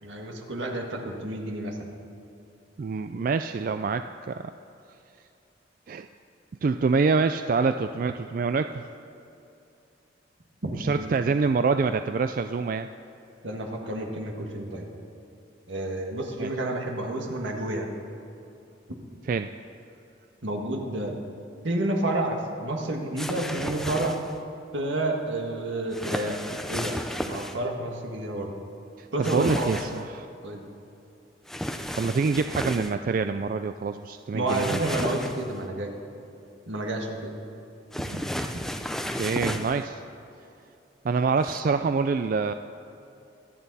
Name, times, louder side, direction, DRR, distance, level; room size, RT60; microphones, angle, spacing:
voice 1, 0.0-1.9 10.6-10.7 11.0-11.1 13.4-14.9 15.7-17.9 20.4-21.2 21.6-24.2 24.7-26.4 26.7-27.0 27.3-28.5 29.1-29.8 30.4-30.6 34.3-36.0 36.7-37.3 38.1-38.5, right 1 dB, 85° right, 1 dB, 1.8 m, -30 dB
voice 2, 2.8-4.5 5.9-6.1 6.6-8.8 10.8-12.9 16.4-16.5 19.3-19.5 29.0-30.3 32.0-34.8 39.1-40.0 41.0-42.5, right 4 dB, 45° right, 9 dB, 0.3 m, -26 dB
sound 1, 23.2-24.4 25.9-27.6 29.2-30.0 31.5-32.9 34.5-35.6 37.9-39.8 41.4-41.6, equal, ahead, 0.5 m, -33 dB
24.5 x 9.1 x 4.2 m, 2.8 s
head